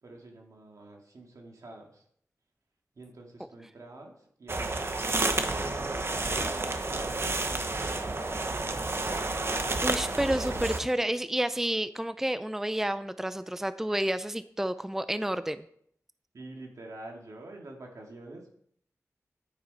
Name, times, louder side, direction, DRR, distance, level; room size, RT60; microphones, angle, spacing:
voice 1, 0.0-2.0 3.0-5.2 5.5-8.4 16.3-18.5, right 2 dB, 75° right, 1 dB, 2.6 m, -47 dB
sound 1, 4.5-10.8, right 2 dB, 45° right, 1.1 m, -30 dB
voice 2, 9.8-15.6, right 1 dB, 5° right, 12 dB, 0.5 m, -30 dB
10.5 x 9.4 x 4.4 m, 0.65 s
wide cardioid pair, 70°, 6 cm